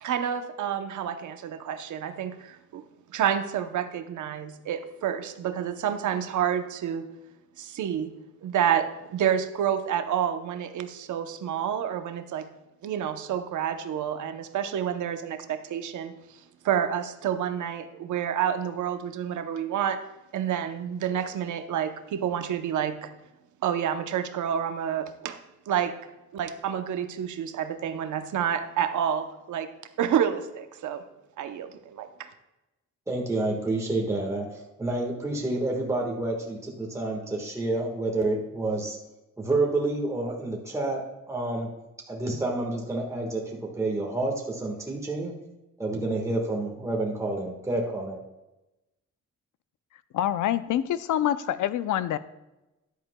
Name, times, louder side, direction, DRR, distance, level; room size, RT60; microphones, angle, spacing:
voice 1, 0.0-2.8 3.1-7.1 7.6-8.1 8.4-12.5 12.8-20.0 20.3-23.1 23.6-25.4 25.7-25.9 26.3-29.7 30.0-31.0 31.4-32.3, right 9 dB, 75° right, 8 dB, 0.8 m, -29 dB
voice 2, 33.1-39.0 39.4-41.0 41.3-41.7 42.1-45.3 45.8-48.2, right 2 dB, 10° right, -1 dB, 1.5 m, -29 dB
voice 3, 50.1-52.2, left 11 dB, 80° left, 14 dB, 0.6 m, -26 dB
13.5 x 10.5 x 2.3 m, 0.99 s
cardioid pair, 145°, 30 cm